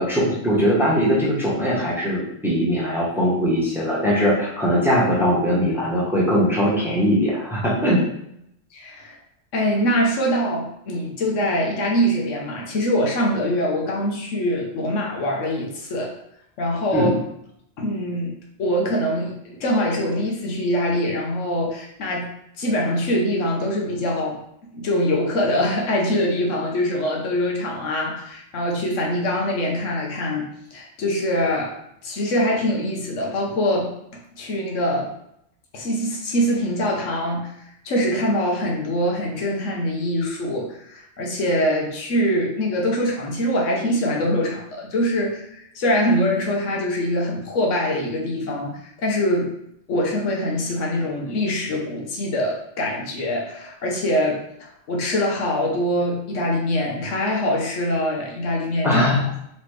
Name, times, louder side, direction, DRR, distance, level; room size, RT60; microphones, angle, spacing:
voice 1, 0.0-8.0 16.9-17.1 58.8-59.2, equal, ahead, -6 dB, 1.0 m, -20 dB
voice 2, 8.7-9.2 9.5-16.1 16.6-17.2 17.8-18.3 18.6-22.3 22.6-24.4 24.7-31.7 32.0-35.1 35.7-49.5 49.9-59.0, equal, 75° left, -1 dB, 1.2 m, -23 dB
4.1 x 3.2 x 3.2 m, 0.76 s
omnidirectional pair, 1.3 m